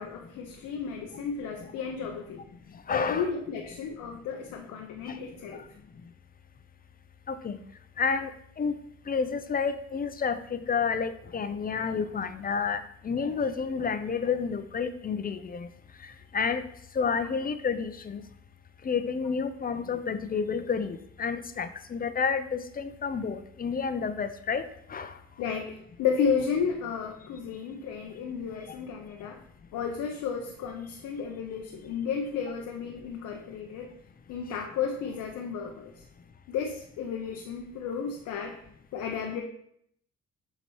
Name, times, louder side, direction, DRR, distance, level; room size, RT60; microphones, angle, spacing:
voice 1, 0.0-2.4 2.9-5.6 25.4-29.4 29.7-33.9 34.3-36.0 36.5-38.6 38.9-39.4, left 6 dB, 80° left, 2 dB, 0.7 m, -33 dB
voice 2, 2.9-3.3 5.1-5.2 7.3-7.6 8.0-8.3 8.6-8.7 9.1-15.7 16.3-16.6 17.0-18.2 18.8-25.1, left 5 dB, 30° left, 10 dB, 0.5 m, -30 dB
7.0 x 3.0 x 4.5 m, 0.70 s
cardioid pair, 90°, 30 cm